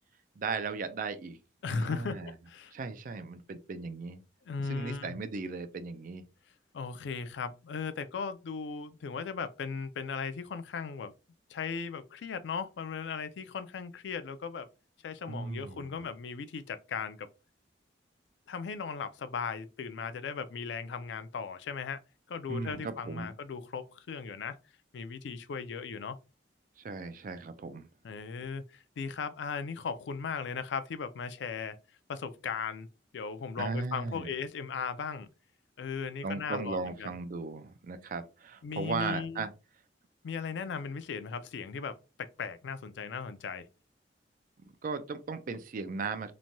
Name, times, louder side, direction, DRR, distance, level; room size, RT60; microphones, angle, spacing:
voice 1, 0.4-1.4 1.7-2.3 2.7-4.2 4.7-6.2 15.3-15.9 22.5-23.3 26.8-27.9 33.6-34.3 36.2-39.5 44.8-46.3, right 4 dB, 50° right, 0.4 m, -37 dB
voice 2, 1.6-2.7 4.5-5.2 6.7-11.1 11.5-14.7 15.0-17.3 18.5-22.0 22.3-24.6 24.9-26.2 28.0-31.8 32.1-32.9 33.1-35.3 35.8-37.1 38.6-39.5 40.2-43.7, left 5 dB, 80° left, 0.4 m, -37 dB
3.0 x 2.2 x 2.6 m
head